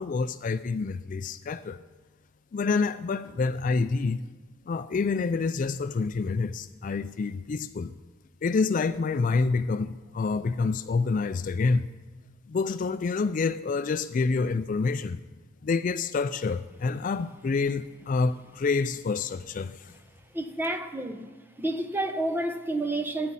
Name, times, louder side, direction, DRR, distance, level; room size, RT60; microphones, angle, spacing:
voice 1, 0.0-1.8 2.5-4.2 4.7-7.9 8.4-11.9 12.5-15.2 15.6-19.9, left 4 dB, 40° left, 0.3 m, -27 dB
voice 2, 20.3-21.3 21.6-23.3, right 1 dB, 10° right, 0.7 m, -30 dB
20.5 x 9.5 x 4.1 m
head